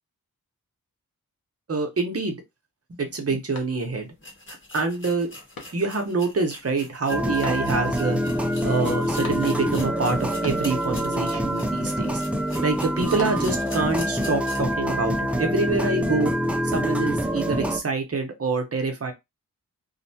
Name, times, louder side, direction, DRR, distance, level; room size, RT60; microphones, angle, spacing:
voice 1, 1.7-2.4 3.0-4.1 4.7-5.3 5.7-8.2 8.6-10.2 10.4-12.2 12.6-16.3 16.7-19.1, right 3 dB, 45° right, 0.8 m, -26 dB
sound 1, 3.5-4.2 4.6-4.7 5.5-6.2 7.4-8.0 9.2-9.8 10.1-10.9 11.3-11.8 12.8-13.8, left 4 dB, 85° left, 0.8 m, -43 dB
sound 2, 3.7-3.8 4.2-14.8 15.2-15.3 15.8-15.9, left 2 dB, 35° left, 1.0 m, -43 dB
sound 3, 7.1-17.8, equal, 5° right, 0.3 m, -26 dB
2.6 x 2.2 x 2.7 m
wide cardioid pair, 90°, 35 cm